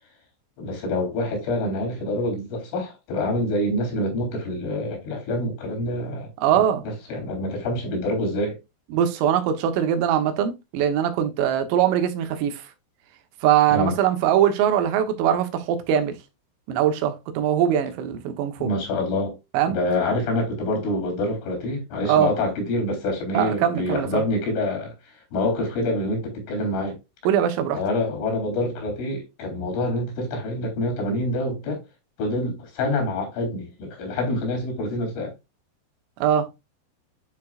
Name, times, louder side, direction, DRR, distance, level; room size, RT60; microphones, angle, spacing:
voice 1, 0.6-8.6 13.7-14.0 18.6-19.4 19.7-24.9 25.3-27.0 27.7-31.8 32.2-35.3, left 1 dB, 75° left, 6.2 m, -26 dB
voice 2, 6.4-6.8 8.9-12.6 13.4-16.1 16.7-18.7 19.5-19.8 22.1-22.3 23.3-24.2 27.3-27.8 36.2-36.5, right 10 dB, 85° right, 3.8 m, -22 dB
11.0 x 4.8 x 2.4 m
omnidirectional pair, 5.8 m